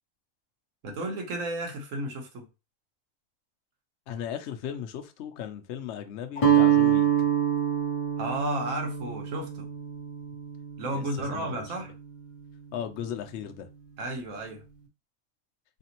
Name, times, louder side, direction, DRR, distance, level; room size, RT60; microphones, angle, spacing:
voice 1, 0.8-2.5 8.2-9.7 10.8-11.9 14.0-14.6, right 1 dB, 65° right, 1.4 m, -33 dB
voice 2, 4.1-7.0 10.9-11.0 11.3-11.7 12.7-13.7, left 9 dB, 65° left, 0.8 m, -36 dB
Guitar, 6.4-12.4, right 9 dB, 35° left, 0.5 m, -26 dB
3.9 x 3.4 x 2.9 m
omnidirectional pair, 1.5 m